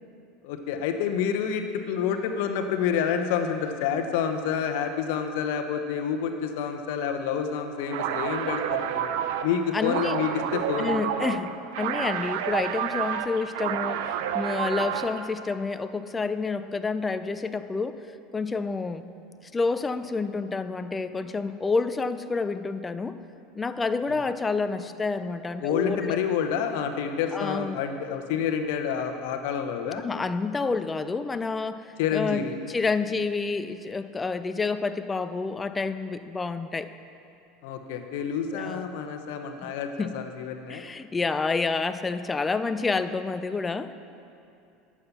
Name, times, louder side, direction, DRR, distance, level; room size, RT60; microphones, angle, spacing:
voice 1, 0.4-9.1 9.4-11.0 25.6-30.1 32.0-32.5 37.6-40.8, left 7 dB, 70° left, 6 dB, 1.0 m, -28 dB
sound 1, 7.9-15.3, right 9 dB, 75° right, 0.6 m, -30 dB
voice 2, 9.7-10.2 10.8-18.0 18.3-19.1 19.5-23.2 23.6-26.2 27.3-27.8 30.0-36.9 38.5-38.8 39.6-39.7 40.0-40.2 40.7-43.9, left 4 dB, 20° left, 12 dB, 0.5 m, -29 dB
11.5 x 7.4 x 6.9 m, 2.7 s
hypercardioid pair, 95°, 0 cm